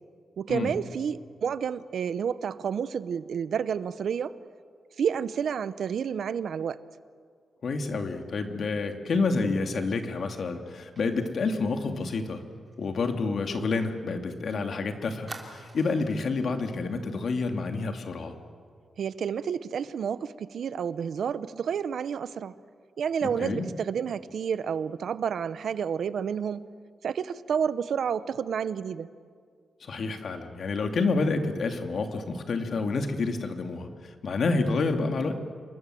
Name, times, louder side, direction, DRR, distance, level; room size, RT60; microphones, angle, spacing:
voice 1, 0.4-4.4 5.0-6.8 19.0-22.5 23.0-26.6 27.0-29.1, right 7 dB, 75° right, 15 dB, 0.8 m, -30 dB
voice 2, 7.6-12.4 12.8-18.3 23.2-23.7 29.8-35.4, left 3 dB, 60° left, 5 dB, 2.5 m, -29 dB
Fire, 11.0-14.4 14.7-14.8 15.3-16.2 16.6-16.8 17.1-17.4, right 2 dB, 25° right, 3.5 m, -48 dB
28.0 x 23.5 x 7.8 m, 2.1 s
wide cardioid pair, 135°, 0 cm